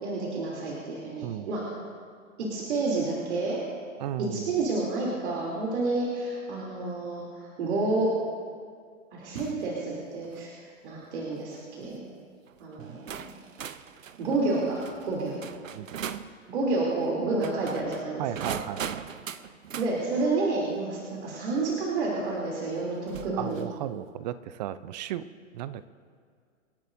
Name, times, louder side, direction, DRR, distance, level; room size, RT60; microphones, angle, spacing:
voice 1, 0.0-1.6 2.5-3.6 4.3-8.1 9.1-12.0 12.6-13.3 14.2-15.4 16.5-18.5 19.8-23.6, right 3 dB, 55° right, -4 dB, 3.1 m, -29 dB
voice 2, 4.0-4.5 12.8-13.0 15.7-16.0 18.2-19.0 23.4-25.2 25.5-25.9, right 12 dB, 35° right, 15 dB, 0.5 m, -35 dB
sound 1, 9.4-9.7 10.2-10.5 11.3-11.6 12.5-12.6 13.1-16.3 17.3-19.9 21.7-21.8 23.0-23.8, right 8 dB, 75° right, 0.8 m, -40 dB
27.5 x 10.5 x 2.7 m, 2.1 s
figure-of-eight pair, 120°, 39 cm